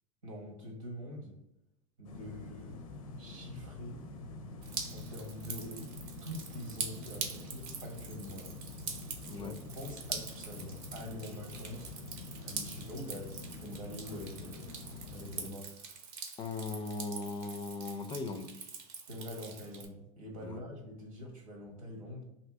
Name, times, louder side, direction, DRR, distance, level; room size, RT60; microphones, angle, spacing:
voice 1, 0.2-1.4 2.0-2.8 3.2-4.1 4.9-5.9 6.2-8.5 9.4-9.5 9.7-11.9 12.4-14.7 15.1-15.8 19.1-22.2, equal, 90° right, 1 dB, 1.2 m, -45 dB
sound 1, 2.0-15.5, left 3 dB, 85° left, 0.5 m, -46 dB
Drip, 4.6-19.9, right 5 dB, 55° right, 0.7 m, -44 dB
voice 2, 9.3-9.6 16.4-18.5 20.4-20.6, left 3 dB, 25° left, 7 dB, 0.4 m, -38 dB
2.7 x 2.6 x 3.5 m, 0.86 s
hypercardioid pair, 95°, 17 cm